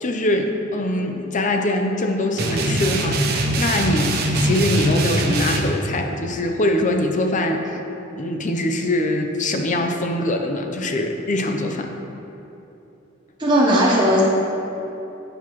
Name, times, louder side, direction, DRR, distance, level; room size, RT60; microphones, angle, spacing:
voice 1, 0.0-7.8 8.1-11.9, left 1 dB, 40° left, 4 dB, 0.7 m, -23 dB
sound 1, 2.4-5.6, right 1 dB, 50° right, 0.9 m, -22 dB
voice 2, 13.4-14.2, equal, 25° right, -6 dB, 1.0 m, -16 dB
10.5 x 8.0 x 3.1 m, 2.9 s
head